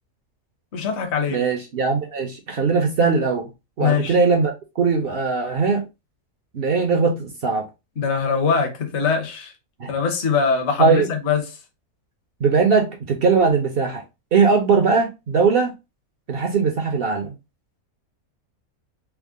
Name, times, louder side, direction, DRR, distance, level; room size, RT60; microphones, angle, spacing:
voice 1, 0.7-1.4 3.8-4.2 8.0-9.5 9.9-11.5, left 6 dB, 55° left, 1.0 m, -22 dB
voice 2, 1.3-3.5 3.8-5.8 6.5-7.7 9.8-9.9 10.8-11.1 12.4-14.0 14.3-15.7 16.3-17.3, right 4 dB, 60° right, 0.6 m, -20 dB
3.5 x 2.0 x 3.5 m
omnidirectional pair, 1.5 m